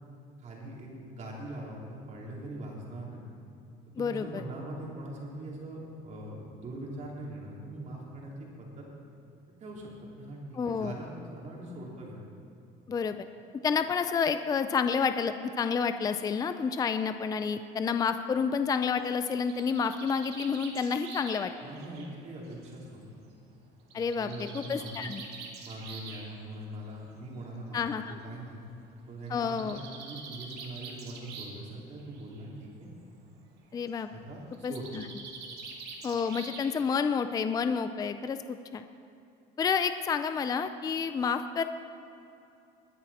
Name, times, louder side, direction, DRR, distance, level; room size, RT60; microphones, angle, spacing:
voice 1, 0.4-3.2 4.0-8.9 9.6-9.9 10.2-12.2 21.6-23.0 23.9-25.1 25.6-28.6 29.1-32.9 34.1-34.9, right 1 dB, 40° right, -3 dB, 3.4 m, -42 dB
voice 2, 4.0-4.4 10.5-10.9 12.9-13.3 13.6-21.5 23.9-25.2 27.7-28.2 29.3-29.8 33.7-34.1 34.6-35.0 36.0-38.8 39.6-41.6, left 6 dB, 20° left, 9 dB, 0.4 m, -29 dB
Bird, 19.0-22.8 23.9-26.3 27.3-27.4 27.8-27.9 28.1-28.2 29.3-31.7 32.0-32.4 34.5-37.0, right 4 dB, 60° right, 2.2 m, -45 dB
21.0 x 10.5 x 4.2 m, 2.7 s
cardioid pair, 135°, 19 cm